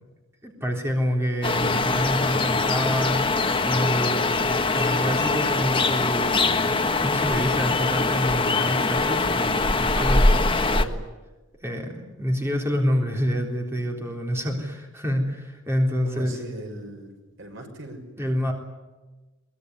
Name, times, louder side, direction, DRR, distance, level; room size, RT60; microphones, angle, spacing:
voice 1, 0.4-6.8 7.0-10.7 11.6-16.4 18.2-18.5, equal, 15° right, 0 dB, 3.7 m, -27 dB
sound 1, 1.4-10.9, left 3 dB, 25° left, 1.5 m, -22 dB
voice 2, 10.6-11.0 16.0-17.1 17.4-18.0, right 1 dB, 65° right, 3 dB, 6.2 m, -38 dB
23.0 x 22.0 x 9.7 m, 1.2 s
head